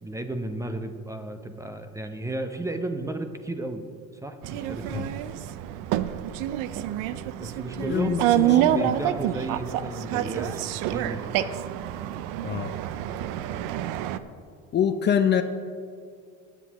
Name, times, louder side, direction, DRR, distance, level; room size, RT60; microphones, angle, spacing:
voice 1, 0.0-3.8 4.2-5.1 7.4-11.5, right 2 dB, 10° right, 8 dB, 0.6 m, -33 dB
sound 1, 4.4-14.2, right 12 dB, 75° right, 0.6 m, -27 dB
voice 2, 7.8-8.9 12.4-12.7 14.7-15.4, left 8 dB, 35° left, 9 dB, 0.5 m, -25 dB
16.5 x 8.3 x 3.0 m, 2.2 s
cardioid pair, 115°, 32 cm